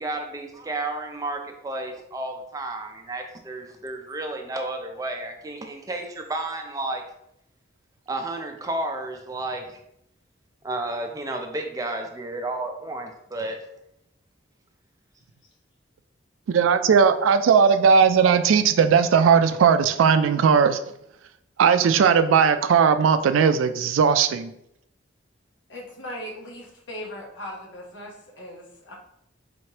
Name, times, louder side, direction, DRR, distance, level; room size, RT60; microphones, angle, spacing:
voice 1, 0.0-7.0 8.1-9.8 10.6-13.6, right 2 dB, 20° right, 3 dB, 0.4 m, -32 dB
voice 2, 16.5-20.8 21.6-24.5, right 6 dB, 90° right, 10 dB, 0.3 m, -18 dB
voice 3, 25.7-28.9, equal, 70° left, -1 dB, 1.0 m, -38 dB
4.2 x 3.1 x 2.9 m, 0.76 s
head